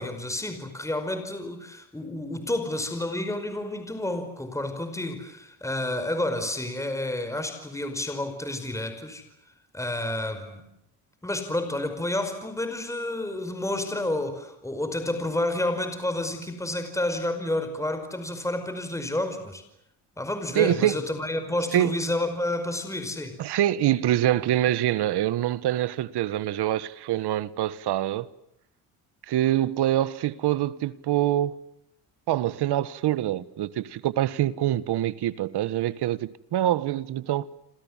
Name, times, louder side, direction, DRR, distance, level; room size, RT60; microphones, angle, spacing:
voice 1, 0.0-9.2 9.7-10.7 11.2-19.6 20.2-23.4, left 1 dB, 5° left, 5.2 m, -30 dB
voice 2, 20.5-20.9 21.7-21.9 23.4-28.3 29.3-31.6 32.3-37.4, right 13 dB, 65° right, 1.6 m, -25 dB
28.5 x 27.5 x 7.4 m
cardioid pair, 100°, 42 cm